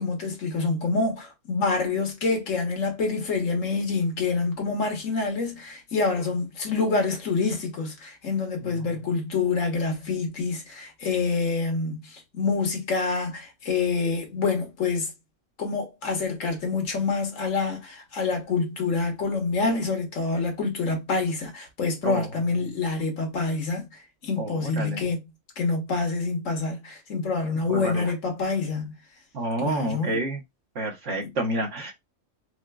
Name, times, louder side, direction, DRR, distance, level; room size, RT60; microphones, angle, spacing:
voice 1, 0.0-15.1 15.6-23.9 24.2-25.2 25.6-28.9 29.6-30.2, left 4 dB, 80° left, 1.5 m, -27 dB
voice 2, 24.4-25.1 27.7-28.1 29.3-30.4 30.7-31.9, right 2 dB, 70° right, 1.4 m, -29 dB
4.4 x 2.4 x 2.2 m
omnidirectional pair, 1.3 m